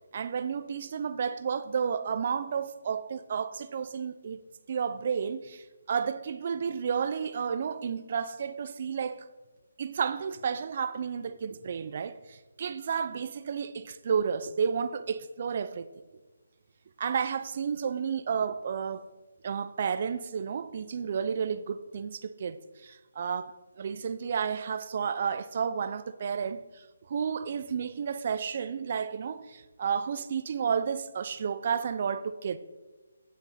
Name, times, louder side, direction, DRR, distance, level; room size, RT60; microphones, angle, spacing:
voice 1, 0.1-4.4 4.7-9.3 9.8-15.9 17.0-19.1 19.4-23.5 23.8-32.6, right 6 dB, 40° right, 0.4 m, -31 dB
9.7 x 7.8 x 4.1 m
hypercardioid pair, 165°, 0 cm